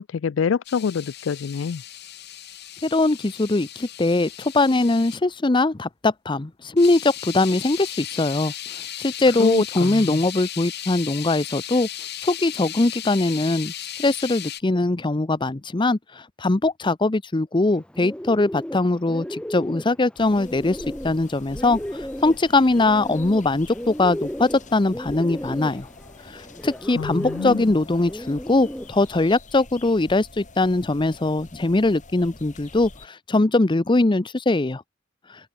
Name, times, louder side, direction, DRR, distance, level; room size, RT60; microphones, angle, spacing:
voice 1, 0.0-1.8 9.4-10.2 26.9-27.7, left 6 dB, 75° left, 0.4 m, -26 dB
sound 1, 0.6-5.2 6.8-14.6, left 11 dB, 60° left, 4.8 m, -36 dB
voice 2, 2.8-8.5 9.0-11.9 12.2-13.7 14.0-16.0 16.4-20.8 21.0-21.8 22.2-25.9 26.3-34.8, left 2 dB, 25° left, 0.7 m, -21 dB
Bird, 17.7-29.3, equal, 5° left, 0.9 m, -35 dB
sound 2, 20.2-33.1, left 2 dB, 40° left, 3.3 m, -46 dB
open air
head